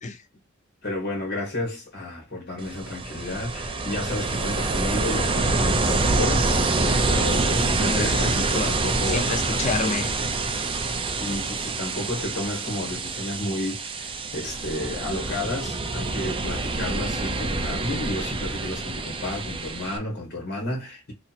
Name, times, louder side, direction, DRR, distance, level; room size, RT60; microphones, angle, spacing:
voice 1, 0.8-9.3 11.2-21.1, left 1 dB, 50° left, 1.4 m, -32 dB
Ocean, 2.6-20.0, right 3 dB, 25° right, 0.5 m, -26 dB
voice 2, 7.8-8.7 9.1-10.4, left 3 dB, 35° left, 0.5 m, -29 dB
2.9 x 2.7 x 4.0 m
head